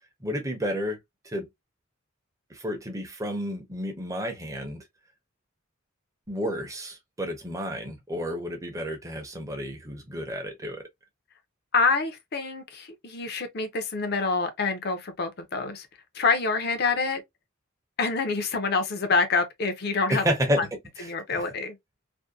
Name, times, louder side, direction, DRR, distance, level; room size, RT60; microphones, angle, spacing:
voice 1, 0.2-1.0 1.3-1.5 2.5-4.8 6.3-10.8 20.1-20.7 21.0-21.1, equal, 15° right, 0.6 m, -30 dB
voice 2, 11.7-15.9 16.1-17.2 18.0-20.2 20.6-20.7 21.0-21.8, left 4 dB, 50° left, 0.6 m, -26 dB
2.6 x 2.1 x 2.2 m
head